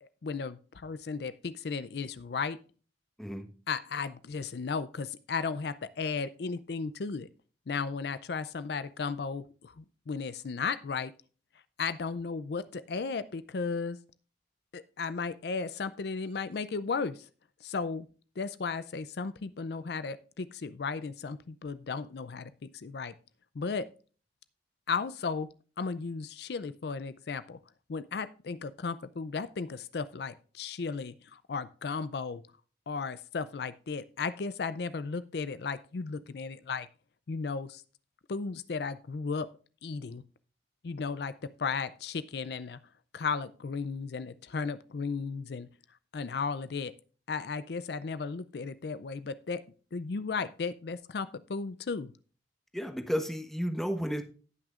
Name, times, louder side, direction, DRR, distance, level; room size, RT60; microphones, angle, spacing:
voice 1, 0.0-2.6 3.7-7.3 7.7-11.1 11.8-14.0 14.7-17.3 17.6-18.1 18.4-23.1 23.5-23.9 24.9-25.5 25.8-27.6 27.9-32.4 32.9-36.9 37.3-37.8 38.3-39.5 39.8-40.2 40.8-42.8 43.1-45.7 46.1-46.9 47.3-49.6 49.9-52.1, left 5 dB, 60° left, 14 dB, 0.4 m, -35 dB
voice 2, 52.7-54.2, equal, ahead, 5 dB, 1.1 m, -32 dB
18.0 x 6.2 x 2.5 m, 0.38 s
head